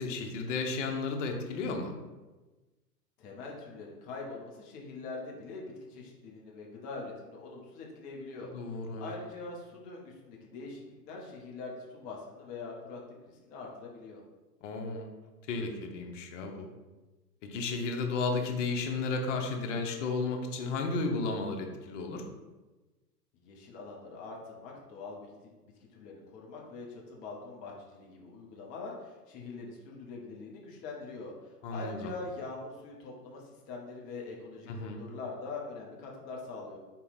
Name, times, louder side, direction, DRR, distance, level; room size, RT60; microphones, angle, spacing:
voice 1, 0.0-1.9 8.5-9.1 14.6-15.1 15.5-16.7 17.5-22.2 31.6-32.1 34.7-35.0, left 3 dB, 45° left, 3 dB, 0.9 m, -33 dB
voice 2, 3.2-14.2 23.3-36.8, left 3 dB, 20° left, -1 dB, 0.4 m, -43 dB
4.4 x 2.8 x 3.9 m, 1.2 s
hypercardioid pair, 110°, 49 cm